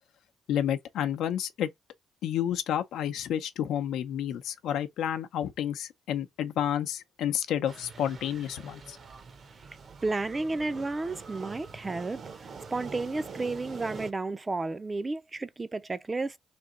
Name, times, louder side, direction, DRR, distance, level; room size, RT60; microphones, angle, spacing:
voice 1, 0.5-1.7 2.2-9.0, left 10 dB, 80° left, 0.6 m, -30 dB
sound 1, 7.7-14.1, right 5 dB, 50° right, 0.8 m, -45 dB
voice 2, 10.0-16.4, right 3 dB, 25° right, 0.4 m, -32 dB
3.4 x 2.8 x 3.8 m
cardioid pair, 90°, 0 cm